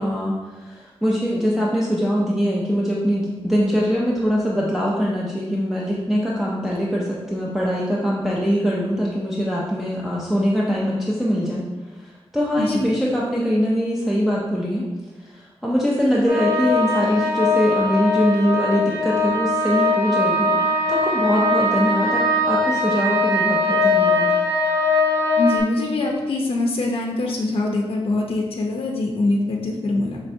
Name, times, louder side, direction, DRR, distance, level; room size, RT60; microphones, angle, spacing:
voice 1, 0.0-11.6 12.0-14.9 15.2-20.5 20.9-24.3, equal, 5° right, -6 dB, 0.5 m, -22 dB
voice 2, 12.6-12.9 25.4-30.2, left 2 dB, 65° left, 0 dB, 0.5 m, -23 dB
sound 1, 16.3-25.6, left 2 dB, 75° right, 1.4 m, -20 dB
5.4 x 3.2 x 2.6 m, 1.2 s
wide cardioid pair, 125°, 10 cm